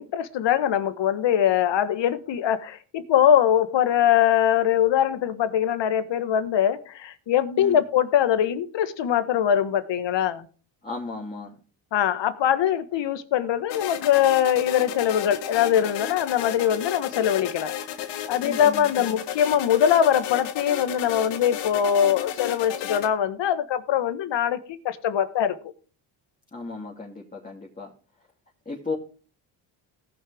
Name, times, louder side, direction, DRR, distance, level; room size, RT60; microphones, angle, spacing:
voice 1, 0.0-10.5 11.9-17.7 18.3-25.6, left 9 dB, 60° left, 1.5 m, -22 dB
voice 2, 10.8-11.5 18.4-19.1 26.5-27.9 28.7-29.0, left 3 dB, 15° left, 2.9 m, -35 dB
sound 1, 13.7-23.1, left 10 dB, 90° left, 1.5 m, -33 dB
18.0 x 6.2 x 3.5 m
cardioid pair, 85°, 50 cm